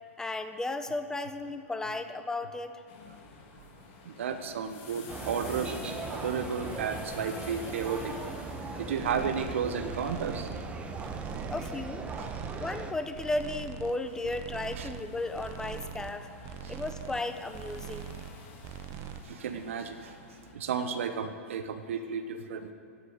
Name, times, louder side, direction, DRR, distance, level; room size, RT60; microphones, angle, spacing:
voice 1, 0.2-2.8 11.5-12.0 12.6-16.3 16.7-18.1, left 2 dB, 10° left, 9 dB, 1.2 m, -34 dB
sound 1, 2.9-20.5, left 4 dB, 45° left, 3.1 m, -49 dB
voice 2, 4.1-5.8 6.1-8.1 8.8-10.5 12.2-12.3 14.8-14.9 19.2-20.1 20.5-22.7, right 6 dB, 65° right, 7 dB, 1.1 m, -33 dB
sound 2, 5.1-12.9, right 4 dB, 15° right, 1.4 m, -39 dB
sound 3, 9.0-9.6 9.9-10.7 11.0-11.8 12.1-12.9 13.1-13.9 14.2-15.1 15.3-16.1 16.4-17.3 17.5-18.4 18.6-19.2, right 10 dB, 35° right, 0.9 m, -42 dB
16.5 x 9.6 x 9.0 m, 2.7 s
figure-of-eight pair, 105°, 8 cm